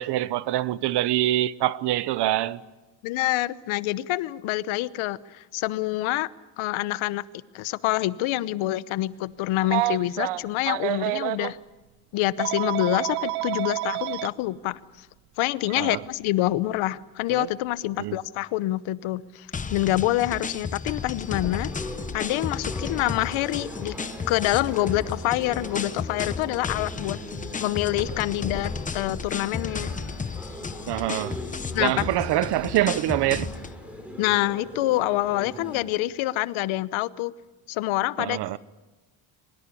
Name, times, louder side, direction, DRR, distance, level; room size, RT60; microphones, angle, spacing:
voice 1, 0.0-2.6 15.8-16.0 18.0-18.2 30.9-31.4 31.8-33.5 38.2-38.6, right 14 dB, 60° right, 0.8 m, -25 dB
voice 2, 3.0-6.3 6.6-7.2 7.5-11.6 12.1-15.1 15.4-21.7 22.1-23.9 24.3-27.2 27.6-29.9 31.7-32.0 34.2-37.3 37.7-38.6, left 16 dB, 75° left, 0.9 m, -26 dB
Telephone, 9.6-11.5 12.4-14.3 15.6-15.8 17.3-17.5, right 18 dB, 90° right, 0.9 m, -28 dB
sound 1, 19.5-33.8, left 5 dB, 15° left, 0.8 m, -34 dB
sound 2, 21.2-35.8, equal, 5° right, 4.6 m, -41 dB
23.5 x 21.0 x 8.4 m
cardioid pair, 150°, 48 cm